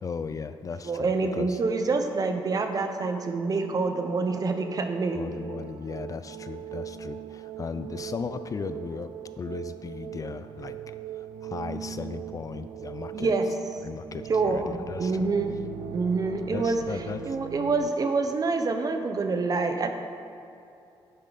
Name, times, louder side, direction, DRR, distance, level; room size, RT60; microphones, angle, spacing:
voice 1, 0.0-1.6 5.1-9.1 9.4-10.8 11.1-13.3 13.8-15.3 16.5-17.4, left 5 dB, 35° left, 11 dB, 0.4 m, -36 dB
voice 2, 0.8-5.2 13.1-13.5 14.3-15.6 15.9-16.8 17.3-19.9, right 3 dB, 40° right, 6 dB, 0.9 m, -26 dB
sound 1, 2.1-17.9, right 10 dB, 85° right, 0.4 m, -41 dB
10.5 x 9.4 x 4.1 m, 2.7 s
cardioid pair, 115°, 9 cm